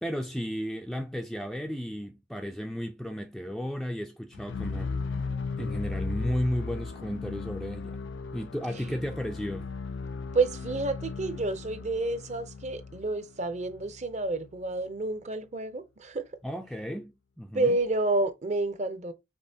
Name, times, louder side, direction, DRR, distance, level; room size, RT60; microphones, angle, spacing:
voice 1, 0.0-4.9 5.6-8.0 8.3-9.7 16.4-17.8, equal, ahead, 0.4 m, -34 dB
sound 1, 4.3-14.4, left 4 dB, 75° left, 0.4 m, -36 dB
voice 2, 10.3-16.3 17.5-19.1, right 2 dB, 40° right, 0.6 m, -29 dB
5.4 x 3.6 x 2.7 m
head